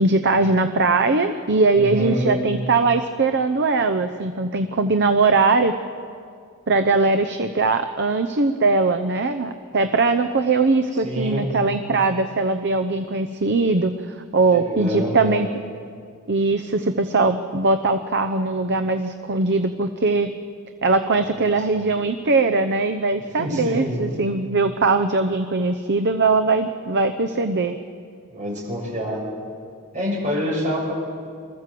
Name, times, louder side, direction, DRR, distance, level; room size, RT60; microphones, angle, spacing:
voice 1, 0.0-5.7 6.7-15.5 16.3-20.3 20.8-27.8, right 3 dB, 50° right, 8 dB, 0.8 m, -20 dB
voice 2, 1.8-2.4 10.9-11.5 14.5-15.4 21.2-21.9 23.4-24.0 28.3-29.2 29.9-30.9, equal, 35° right, -3 dB, 6.9 m, -27 dB
26.0 x 14.0 x 7.7 m, 2.3 s
head